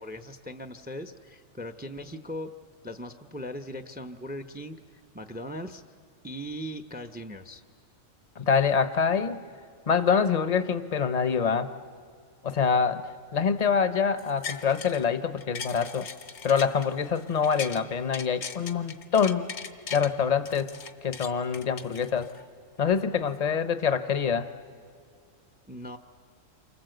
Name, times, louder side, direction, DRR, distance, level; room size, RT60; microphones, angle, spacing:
voice 1, 0.0-2.5 2.8-4.8 5.1-5.8 6.2-7.6 25.7-26.0, equal, 10° right, 9 dB, 0.6 m, -39 dB
voice 2, 8.4-9.4 9.9-11.7 12.4-16.1 16.4-19.5 19.9-20.7 21.0-22.3 22.8-24.5, left 6 dB, 35° left, 11 dB, 0.8 m, -25 dB
sound 1, 14.2-15.1 15.4-17.8 18.1-20.1 20.5-22.5 22.9-23.0, left 6 dB, 75° left, 1.5 m, -39 dB
28.0 x 25.0 x 7.9 m, 2.4 s
omnidirectional pair, 1.4 m